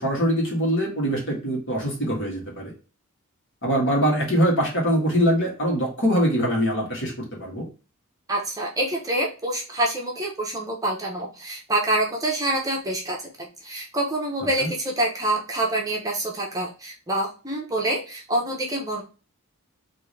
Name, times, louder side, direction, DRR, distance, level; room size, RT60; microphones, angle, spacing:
voice 1, 0.0-2.7 3.6-7.1 7.4-7.6 14.6-14.7, equal, 55° left, -2 dB, 1.8 m, -23 dB
voice 2, 8.3-19.0, right 1 dB, 15° right, -1 dB, 0.7 m, -26 dB
3.7 x 2.7 x 3.1 m, 0.34 s
head